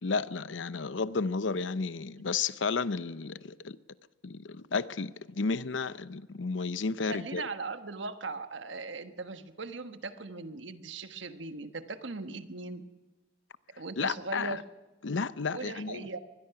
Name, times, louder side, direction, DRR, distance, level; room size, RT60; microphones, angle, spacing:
voice 1, 0.0-3.8 4.2-7.5 14.0-14.6 15.0-16.1, left 4 dB, 85° left, 0.7 m, -32 dB
voice 2, 7.0-12.9 13.8-14.6 15.5-16.2, right 3 dB, 80° right, 1.3 m, -39 dB
23.0 x 20.5 x 5.9 m
head